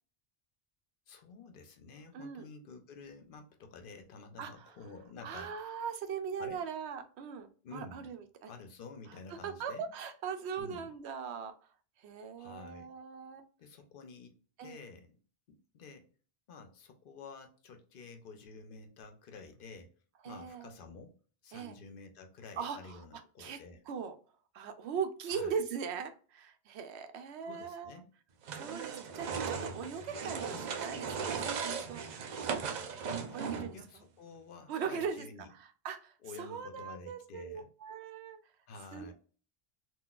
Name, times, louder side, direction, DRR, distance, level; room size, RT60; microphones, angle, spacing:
voice 1, 1.1-5.7 6.4-6.6 7.6-8.1 8.5-9.9 10.6-10.9 12.4-12.9 13.6-15.2 15.5-16.1 16.5-20.0 20.2-21.1 21.4-23.8 25.3-25.6 27.4-28.1 30.5-30.7 33.3-33.5 33.7-35.5 36.2-37.7 38.7-39.1, left 4 dB, 60° left, 0.7 m, -50 dB
voice 2, 2.1-2.5 4.4-4.7 5.2-8.5 9.3-11.5 12.0-13.5 14.6-14.8 20.2-20.7 21.5-21.7 22.6-24.2 24.5-28.0 28.5-32.5 33.3-33.8 34.7-35.3 35.6-38.4 38.9-39.1, right 6 dB, 85° right, 0.8 m, -40 dB
sound 1, 28.4-33.9, right 6 dB, 55° right, 0.5 m, -37 dB
3.8 x 2.3 x 2.4 m
omnidirectional pair, 1.1 m